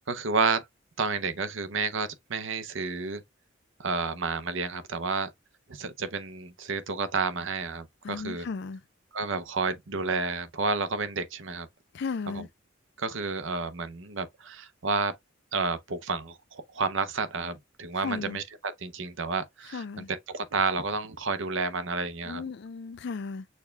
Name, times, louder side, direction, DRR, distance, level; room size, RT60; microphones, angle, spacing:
voice 1, 0.1-0.6 1.0-3.2 3.8-5.3 5.7-8.4 9.1-11.7 13.0-15.1 15.5-19.8 20.1-22.4, right 4 dB, 70° right, 0.7 m, -30 dB
voice 2, 8.0-8.8 11.9-12.5 17.9-18.4 19.7-20.1 22.2-23.5, left 5 dB, 55° left, 0.4 m, -35 dB
6.4 x 2.3 x 3.3 m
head